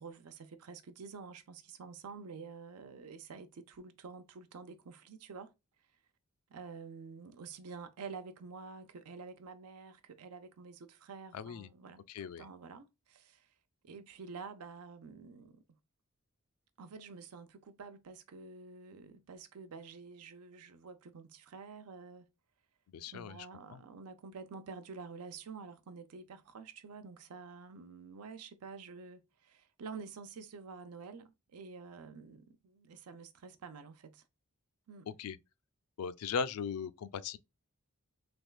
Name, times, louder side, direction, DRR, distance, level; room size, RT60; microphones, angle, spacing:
voice 1, 0.0-5.5 6.5-12.0 12.4-13.5 13.8-15.6 16.8-22.3 23.1-34.2 34.9-35.2, right 5 dB, 90° right, 0.5 m, -49 dB
voice 2, 11.3-11.7 12.1-12.4 22.9-23.4 23.7-23.8 35.2-35.4 36.0-37.4, left 6 dB, 75° left, 0.3 m, -38 dB
3.4 x 3.1 x 2.2 m
head